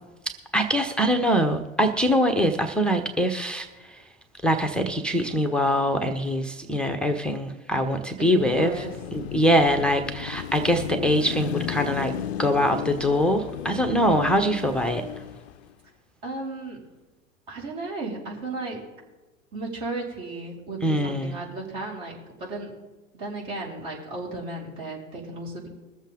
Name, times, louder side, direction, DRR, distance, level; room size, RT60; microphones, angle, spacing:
voice 1, 0.5-4.0 4.4-8.8 9.1-12.1 12.4-15.0 20.8-21.3, equal, ahead, 4 dB, 0.7 m, -23 dB
voice 2, 8.2-8.9 16.2-16.8 17.5-18.8 19.5-22.7 23.1-25.7, right 2 dB, 45° right, -3 dB, 4.3 m, -34 dB
Car passing by / Traffic noise roadway noise / Engine, 8.4-15.7, left 11 dB, 55° left, 0.5 m, -34 dB
22.0 x 7.3 x 3.6 m, 1.2 s
figure-of-eight pair, 100°, 39 cm